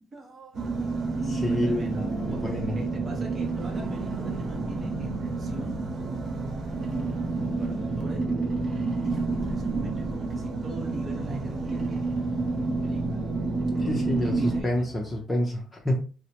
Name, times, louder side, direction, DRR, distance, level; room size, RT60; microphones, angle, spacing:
voice 1, 0.1-0.6 1.3-5.8 7.0-7.1 7.4-8.3 9.0-12.0 12.8-13.2 13.8-14.9, equal, 35° right, 0 dB, 0.9 m, -42 dB
sound 1, 0.5-14.6, right 3 dB, 50° right, 0.6 m, -29 dB
sound 2, 0.5-15.2, right 3 dB, 90° right, 0.9 m, -46 dB
voice 2, 1.2-2.8 13.8-16.0, left 1 dB, 15° left, -2 dB, 0.6 m, -29 dB
2.8 x 2.1 x 2.8 m, 0.36 s
cardioid pair, 105°, 0 cm